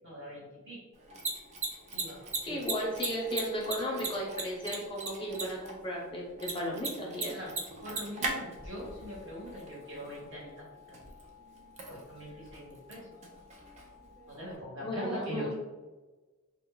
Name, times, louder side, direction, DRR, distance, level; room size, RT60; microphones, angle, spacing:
voice 1, 0.0-0.8 1.9-2.6 7.3-7.6 7.8-11.1 11.9-13.1 14.3-15.5, equal, 60° right, -5 dB, 1.2 m, -42 dB
Mechanisms, 0.9-14.5, right 3 dB, 30° right, 0.4 m, -40 dB
voice 2, 2.4-7.4 14.8-15.5, equal, 25° left, -3 dB, 0.6 m, -35 dB
2.3 x 2.0 x 3.8 m, 1.2 s
head